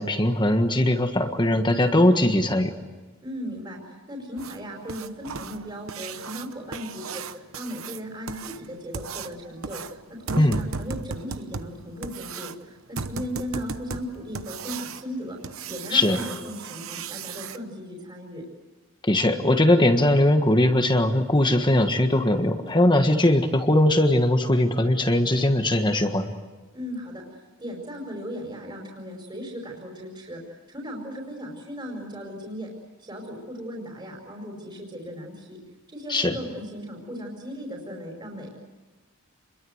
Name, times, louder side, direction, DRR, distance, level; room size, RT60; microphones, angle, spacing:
voice 1, 0.0-2.7 10.4-10.5 15.9-16.2 19.1-26.3 36.1-36.3, left 1 dB, 20° left, 6 dB, 1.5 m, -20 dB
voice 2, 3.2-3.8 4.1-18.4 26.7-30.4 30.7-32.7 33.0-35.6 35.9-38.5, equal, 20° right, 0 dB, 5.1 m, -37 dB
sound 1, 4.4-17.6 19.9-20.0 20.4-20.5 21.0-21.1 21.6-21.7 22.1-22.3 22.7-22.8 23.2-23.3, right 5 dB, 65° right, 1.0 m, -37 dB
29.0 x 22.5 x 8.0 m, 1.3 s
head